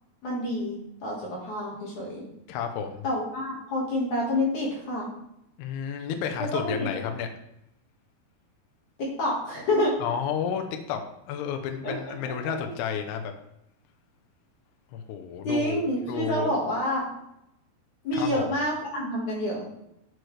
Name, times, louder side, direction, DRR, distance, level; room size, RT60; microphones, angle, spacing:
voice 1, 0.2-2.3 3.0-5.1 6.5-6.9 9.0-10.1 11.8-11.9 12.4-12.5 15.4-17.0 18.0-19.6, left 1 dB, 55° left, -4 dB, 2.7 m, -28 dB
voice 2, 2.5-3.0 5.6-7.3 10.0-11.0 11.3-13.3 14.9-16.5 18.1-18.4, left 7 dB, 80° left, 5 dB, 2.8 m, -31 dB
9.3 x 6.3 x 3.2 m, 0.83 s
omnidirectional pair, 4.8 m